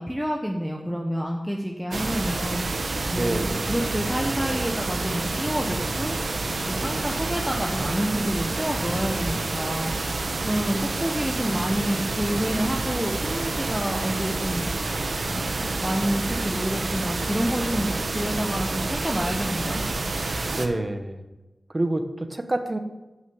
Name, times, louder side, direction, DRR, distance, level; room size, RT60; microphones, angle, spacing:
voice 1, 0.0-2.7 3.1-6.4 6.7-9.9 10.4-14.9 15.3-19.8, equal, ahead, 0 dB, 1.2 m, -28 dB
sound 1, 1.9-20.7, right 3 dB, 65° right, 1.0 m, -28 dB
voice 2, 3.1-3.9 4.3-4.7 20.6-21.2 21.7-22.8, right 2 dB, 35° right, 7 dB, 1.2 m, -28 dB
9.4 x 6.2 x 7.1 m, 1.1 s
cardioid pair, 55°, 0 cm